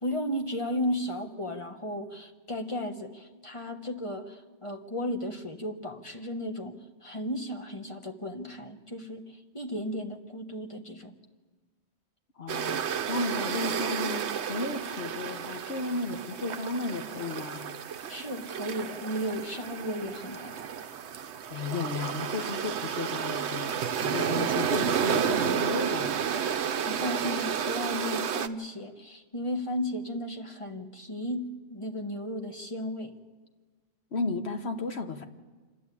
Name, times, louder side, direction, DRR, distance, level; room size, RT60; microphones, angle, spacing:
voice 1, 0.0-11.1 18.1-20.5 26.9-33.1, equal, 25° left, 4 dB, 1.3 m, -34 dB
voice 2, 12.4-17.7 21.5-26.3 34.1-35.2, left 4 dB, 60° left, 6 dB, 1.3 m, -34 dB
sound 1, 12.5-28.5, right 8 dB, 70° right, 1.0 m, -31 dB
28.5 x 11.0 x 8.4 m, 1.4 s
omnidirectional pair, 1.2 m